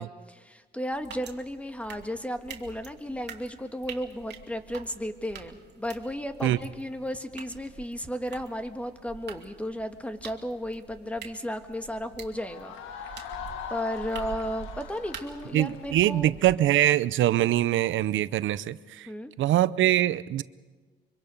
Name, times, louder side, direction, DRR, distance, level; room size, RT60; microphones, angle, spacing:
voice 1, 0.0-12.8 13.0-13.3 13.7-16.3 19.1-19.3, equal, 5° left, 7 dB, 1.7 m, -34 dB
sound 1, 0.9-16.5, right 7 dB, 60° right, 2.5 m, -46 dB
sound 2, 12.3-17.1, left 8 dB, 90° left, 1.7 m, -41 dB
voice 2, 15.5-19.1 19.4-20.4, right 13 dB, 75° right, 16 dB, 0.7 m, -23 dB
25.0 x 24.5 x 5.4 m, 1.3 s
cardioid pair, 90°, 20 cm